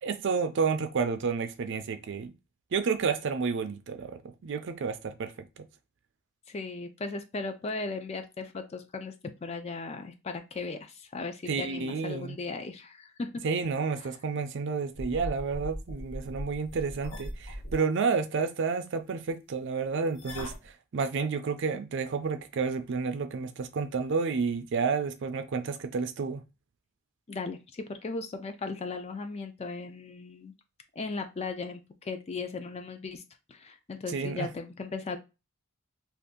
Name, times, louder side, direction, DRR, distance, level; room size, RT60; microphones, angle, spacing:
voice 1, 0.0-2.3 2.7-5.3 11.5-12.4 13.4-26.4 34.1-34.5, right 5 dB, 55° right, 0.4 m, -30 dB
voice 2, 6.5-13.4 27.3-30.5 31.0-33.2 33.5-35.2, left 3 dB, 30° left, 0.3 m, -37 dB
sound 1, 14.9-17.8 20.2-20.7, equal, 80° left, 0.9 m, -39 dB
2.6 x 2.4 x 3.6 m
head